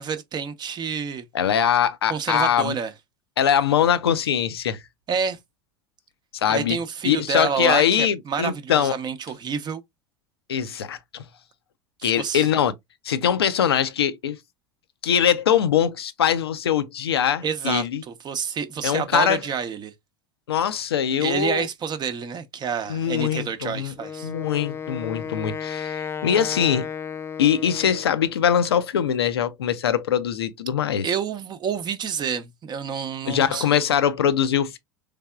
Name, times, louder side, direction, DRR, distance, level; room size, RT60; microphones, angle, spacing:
voice 1, 0.0-1.2 2.1-2.9 5.1-5.4 6.5-9.8 12.0-12.5 17.4-19.9 21.2-24.3 31.0-33.7, right 6 dB, 35° right, 0.7 m, -28 dB
voice 2, 1.3-2.7 3.4-4.8 6.3-6.8 7.0-9.0 10.5-11.2 12.0-12.7 13.0-14.4 15.0-18.0 18.8-19.4 20.5-21.7 22.9-23.9 24.2-26.9 27.4-31.1 33.3-34.8, left 9 dB, 90° left, 0.5 m, -22 dB
Wind instrument woodwind instrument, 24.0-28.2, left 7 dB, 20° left, 0.4 m, -33 dB
3.5 x 3.4 x 2.2 m
hypercardioid pair, 85°, 13 cm